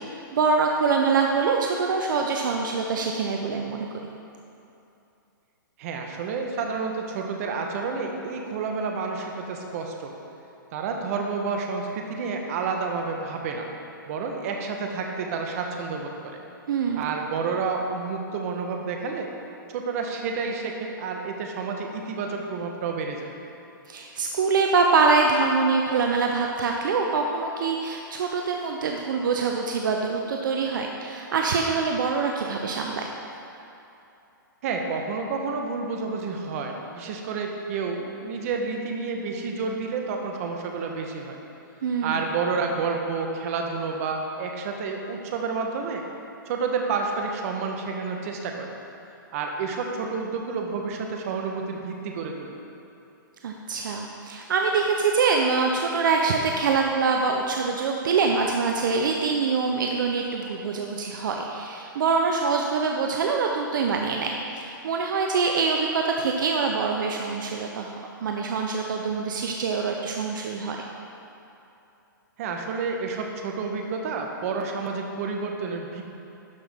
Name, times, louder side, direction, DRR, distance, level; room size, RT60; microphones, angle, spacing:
voice 1, 0.1-3.9 16.7-17.0 23.9-33.1 41.8-42.3 53.4-67.9 68.2-70.8, right 4 dB, 65° right, 2 dB, 0.7 m, -24 dB
voice 2, 5.8-10.1 10.7-13.7 14.1-16.4 17.0-19.3 19.7-23.4 34.6-41.4 42.0-46.0 46.5-48.7 49.3-52.5 72.4-76.0, right 4 dB, 45° right, 2 dB, 1.1 m, -30 dB
12.0 x 5.8 x 3.6 m, 2.8 s
hypercardioid pair, 150°, 11 cm